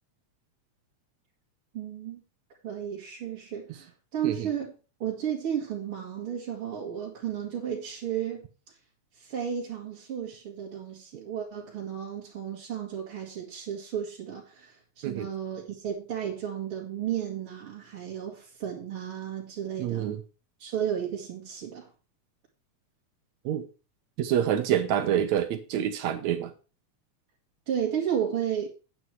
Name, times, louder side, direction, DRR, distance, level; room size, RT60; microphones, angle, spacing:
voice 1, 1.7-2.2 2.6-4.7 5.0-8.5 9.2-20.2 20.6-21.9 27.7-28.7, right 9 dB, 45° right, -4 dB, 2.8 m, -33 dB
voice 2, 19.8-20.2 23.5-23.7 24.2-26.5, right 10 dB, 75° right, 8 dB, 2.0 m, -27 dB
9.6 x 8.8 x 4.6 m, 0.33 s
omnidirectional pair, 3.5 m